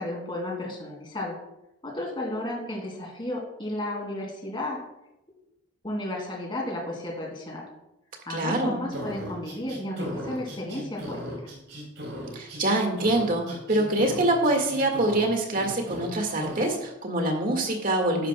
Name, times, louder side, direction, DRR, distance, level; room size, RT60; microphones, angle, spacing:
voice 1, 0.0-1.4 1.8-4.8 5.8-7.7 8.3-11.3, left 1 dB, 25° left, 0 dB, 2.4 m, -33 dB
voice 2, 8.3-8.8 12.3-18.3, right 1 dB, 45° right, 3 dB, 1.8 m, -25 dB
sound 1, 8.9-12.6 13.0-15.3 15.5-16.1 16.4-16.6, equal, 70° right, 3.8 m, -37 dB
11.5 x 10.0 x 2.2 m, 0.88 s
head